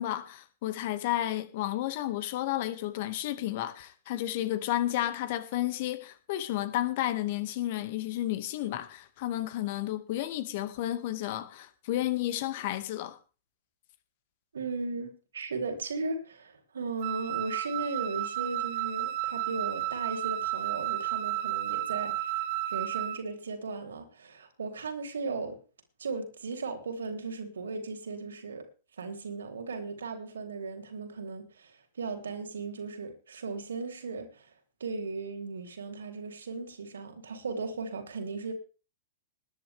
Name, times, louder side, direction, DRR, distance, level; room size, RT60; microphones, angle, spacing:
voice 1, 0.0-13.2, left 14 dB, 50° left, 1.9 m, -32 dB
voice 2, 14.5-25.6 26.0-28.6 29.0-34.5 34.8-38.5, right 4 dB, 70° right, 3.6 m, -37 dB
Wind instrument woodwind instrument, 17.0-23.2, right 14 dB, 45° right, 1.0 m, -32 dB
20.0 x 10.5 x 3.5 m
figure-of-eight pair, 100°, 0 cm